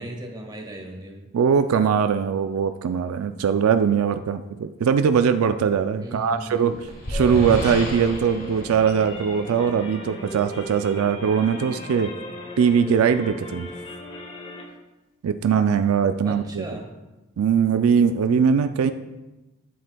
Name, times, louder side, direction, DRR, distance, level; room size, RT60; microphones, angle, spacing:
voice 1, 0.0-1.3 6.0-6.8 16.2-16.9, right 1 dB, 20° right, 2 dB, 1.1 m, -37 dB
voice 2, 1.3-12.1 12.6-13.7 15.2-16.6 17.4-18.9, right 7 dB, 75° right, 9 dB, 0.3 m, -21 dB
sound 1, 6.2-9.9, left 1 dB, 45° left, 1.7 m, -32 dB
sound 2, 7.1-14.6, left 1 dB, 30° left, 1.1 m, -38 dB
10.0 x 7.7 x 2.2 m, 1.1 s
head